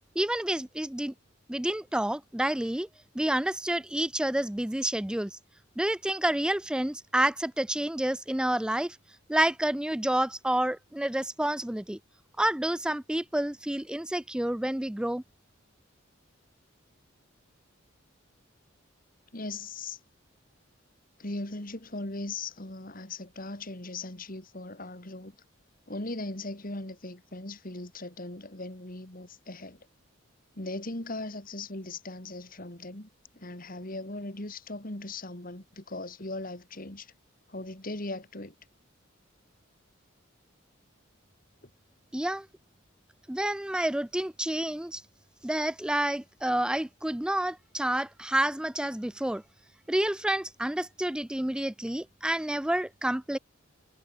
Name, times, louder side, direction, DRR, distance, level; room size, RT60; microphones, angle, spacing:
voice 1, 0.2-1.1 1.5-2.9 3.1-5.3 5.8-9.0 9.3-12.0 12.4-15.2 42.1-42.5 43.3-45.0 45.4-49.4 49.9-53.4, right 1 dB, 5° right, 0.3 m, -29 dB
voice 2, 19.3-20.0 21.2-25.3 25.9-29.8 30.5-33.1 33.3-37.1 37.5-38.5 41.6-41.7, left 2 dB, 45° left, 2.7 m, -39 dB
head